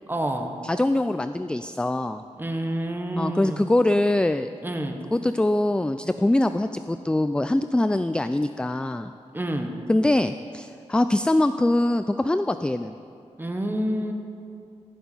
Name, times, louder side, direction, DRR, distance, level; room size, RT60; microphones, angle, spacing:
voice 1, 0.1-0.5 2.4-3.6 4.6-5.0 9.3-9.7 13.4-14.1, right 1 dB, 15° right, 4 dB, 1.3 m, -28 dB
voice 2, 0.6-2.2 3.2-4.5 5.1-9.1 9.9-12.9, left 1 dB, 10° left, 10 dB, 0.3 m, -23 dB
15.0 x 7.1 x 9.2 m, 2.5 s
wide cardioid pair, 120°, 12 cm